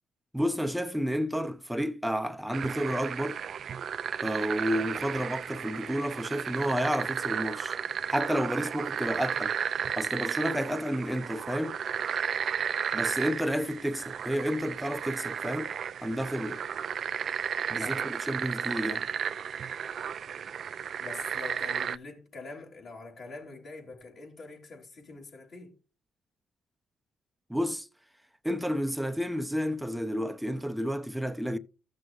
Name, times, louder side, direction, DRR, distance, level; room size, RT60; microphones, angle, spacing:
voice 1, 0.3-3.4 4.2-7.8 8.1-9.5 10.0-11.8 12.9-15.7 16.0-16.6 17.7-19.1 27.5-27.9 28.4-31.6, equal, 5° right, 0.6 m, -31 dB
sound 1, 2.5-22.0, right 8 dB, 55° right, 0.3 m, -33 dB
voice 2, 21.0-25.7, left 3 dB, 55° left, 3.0 m, -44 dB
14.5 x 6.2 x 2.5 m
cardioid pair, 90°, 0 cm